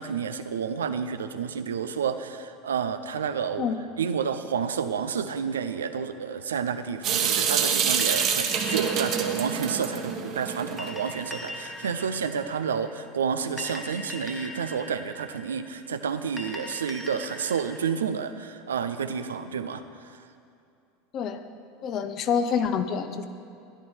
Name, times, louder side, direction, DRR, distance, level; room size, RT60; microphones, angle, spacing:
voice 1, 0.0-3.7 4.0-19.8, right 6 dB, 85° right, 10 dB, 0.6 m, -30 dB
Water tap faucet / Sink (filling or washing) / Drip, 7.0-11.1, right 7 dB, 50° right, 1.3 m, -26 dB
sound 1, 8.0-17.8, left 1 dB, 10° left, 1.5 m, -41 dB
voice 2, 21.8-23.2, left 7 dB, 45° left, 9 dB, 0.9 m, -27 dB
14.0 x 11.0 x 4.5 m, 2.6 s
hypercardioid pair, 85°, 0 cm